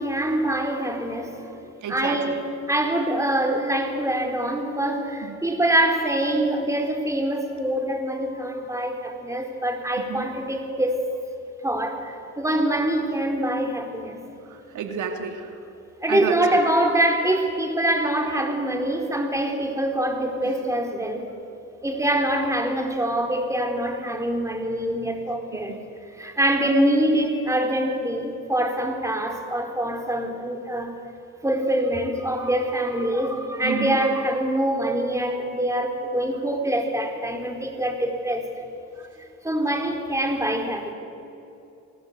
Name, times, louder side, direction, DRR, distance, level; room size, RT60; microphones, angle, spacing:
voice 1, 0.0-1.6 1.9-2.4 2.7-11.0 11.6-14.2 16.0-21.3 21.8-25.7 26.2-30.9 31.4-38.5 39.4-40.9, right 1 dB, 10° right, 4 dB, 4.1 m, -24 dB
voice 2, 1.8-2.4 5.2-5.3 10.0-10.3 14.5-15.6 16.1-16.6 20.4-20.8 25.5-25.8 33.6-34.0, right 6 dB, 80° right, 5 dB, 2.5 m, -31 dB
27.5 x 19.5 x 8.2 m, 2.8 s
cardioid pair, 90°, 30 cm